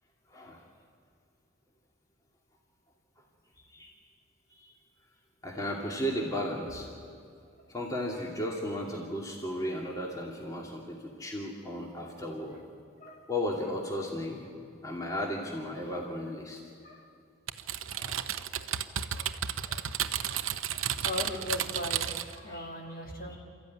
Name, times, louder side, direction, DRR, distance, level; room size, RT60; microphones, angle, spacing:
voice 1, 0.3-0.6 3.7-3.9 4.5-4.7 5.4-6.9 7.7-12.6 13.3-14.4 14.8-16.6 18.0-18.2 21.0-21.1 22.5-22.7 23.3-23.4, left 1 dB, 15° left, -1 dB, 2.5 m, -35 dB
Typing, 17.5-22.4, right 9 dB, 85° right, 0.9 m, -33 dB
voice 2, 20.7-23.4, left 2 dB, 40° left, 0 dB, 2.9 m, -40 dB
28.5 x 14.5 x 9.6 m, 2.4 s
head